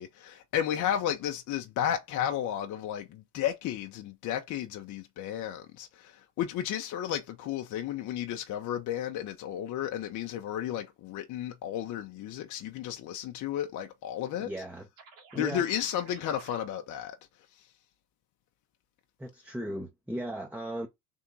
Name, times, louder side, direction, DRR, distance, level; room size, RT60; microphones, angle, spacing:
voice 1, 0.0-14.5 15.4-17.2 17.5-17.7, left 10 dB, 45° left, 0.7 m, -33 dB
voice 2, 14.4-14.9 15.3-15.7 19.2-20.9, right 1 dB, 5° right, 0.7 m, -36 dB
sound 1, 15.0-16.6, right 5 dB, 75° right, 1.8 m, -53 dB
3.6 x 2.7 x 3.9 m
hypercardioid pair, 85°, 44 cm